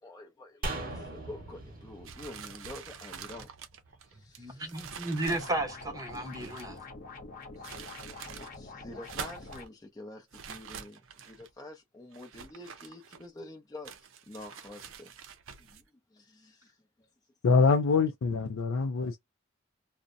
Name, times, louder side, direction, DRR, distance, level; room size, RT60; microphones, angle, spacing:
voice 1, 0.0-3.5 4.1-4.9 7.6-7.9 8.2-13.9 14.3-15.2 15.6-15.8 16.1-17.1, left 1 dB, 20° left, 0.5 m, -48 dB
sound 1, 0.6-4.0 4.3-4.4, right 2 dB, 45° right, 0.9 m, -40 dB
sound 2, 2.0-6.8 7.4-8.5 8.9-9.7 10.3-11.5 12.1-13.4 13.8-15.8, right 7 dB, 75° right, 0.5 m, -46 dB
voice 2, 4.4-6.8, right 2 dB, 20° right, 0.8 m, -33 dB
sound 3, 5.3-9.7, left 3 dB, 45° left, 0.8 m, -45 dB
voice 3, 17.4-19.2, left 4 dB, 85° left, 0.4 m, -24 dB
2.5 x 2.0 x 2.5 m
head